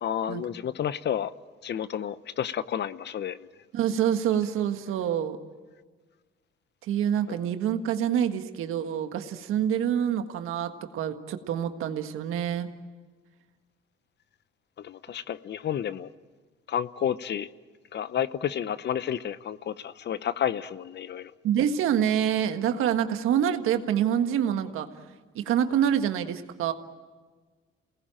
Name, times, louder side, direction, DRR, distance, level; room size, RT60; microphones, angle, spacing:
voice 1, 0.0-1.3 1.6-3.5 7.3-7.4 14.8-16.1 16.7-17.5 17.9-21.3, left 9 dB, 55° left, 16 dB, 0.8 m, -31 dB
voice 2, 3.7-5.4 6.8-12.7 21.4-24.9 25.3-26.7, right 9 dB, 80° right, 7 dB, 1.6 m, -26 dB
28.0 x 19.0 x 9.0 m, 1.4 s
cardioid pair, 80°, 21 cm